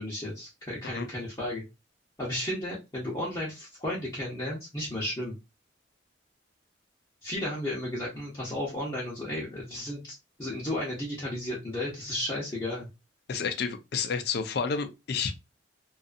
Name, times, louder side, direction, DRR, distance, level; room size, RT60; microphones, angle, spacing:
voice 1, 0.0-1.6 2.2-5.3 7.2-10.1 10.4-12.9, left 1 dB, 20° left, 0.8 m, -33 dB
voice 2, 13.3-15.3, left 5 dB, 55° left, 0.4 m, -30 dB
2.6 x 2.4 x 2.4 m
head